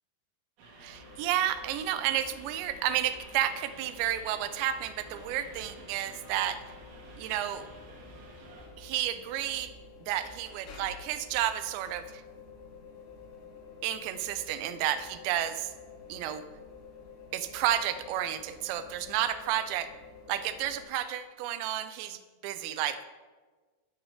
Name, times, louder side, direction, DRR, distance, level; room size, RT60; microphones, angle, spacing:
sound 1, 0.6-8.7, right 2 dB, 60° right, 3.8 m, -52 dB
voice 1, 0.8-6.6 7.2-7.7 8.8-9.7 10.0-12.2 13.8-15.7 16.1-16.4 17.3-19.9 20.3-23.0, right 11 dB, 85° right, 12 dB, 2.8 m, -31 dB
sound 2, 0.9-20.8, left 5 dB, 70° left, 3.7 m, -50 dB
12.5 x 11.5 x 3.5 m, 1.4 s
omnidirectional pair, 5.2 m